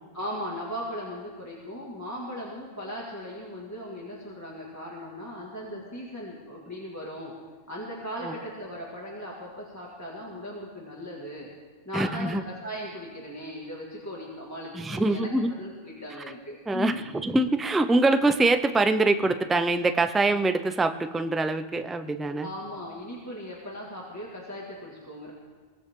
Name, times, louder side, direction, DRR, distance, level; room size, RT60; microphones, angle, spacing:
voice 1, 0.1-7.3 7.7-11.5 11.9-17.0 22.4-25.3, equal, 15° left, -4 dB, 2.1 m, -38 dB
voice 2, 11.9-12.4 14.8-15.5 16.7-16.9 17.2-22.5, right 2 dB, ahead, 8 dB, 0.4 m, -24 dB
22.5 x 16.5 x 3.7 m, 1.4 s
omnidirectional pair, 1.0 m